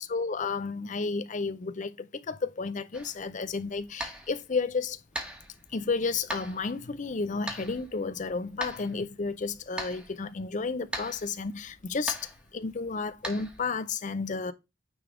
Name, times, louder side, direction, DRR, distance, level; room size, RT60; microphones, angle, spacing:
voice 1, 0.0-5.0 5.7-14.5, left 4 dB, 35° left, 0.5 m, -32 dB
sound 1, 2.9-13.6, right 1 dB, 5° right, 1.1 m, -42 dB
9.3 x 3.4 x 3.7 m
head